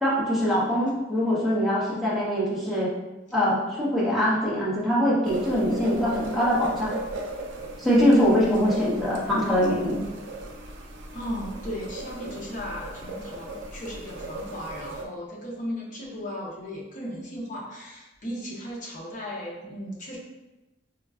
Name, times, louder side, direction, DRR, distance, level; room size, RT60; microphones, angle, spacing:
voice 1, 0.0-2.9 3.3-6.9 7.8-10.0, equal, ahead, -8 dB, 0.9 m, -23 dB
sound 1, 5.2-15.0, right 2 dB, 75° right, 0.5 m, -37 dB
voice 2, 11.1-20.2, equal, 45° left, -3 dB, 0.8 m, -36 dB
4.4 x 2.2 x 2.4 m, 1.0 s
head